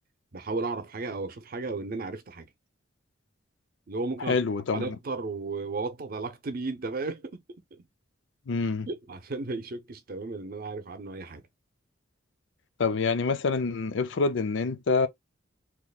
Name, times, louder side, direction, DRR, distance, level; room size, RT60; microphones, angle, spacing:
voice 1, 0.3-2.5 3.9-4.4 4.7-7.8 8.9-11.4, right 3 dB, 50° right, 0.7 m, -34 dB
voice 2, 4.2-5.0 8.5-8.9 12.8-15.1, left 4 dB, 65° left, 0.5 m, -26 dB
3.0 x 2.2 x 4.0 m
head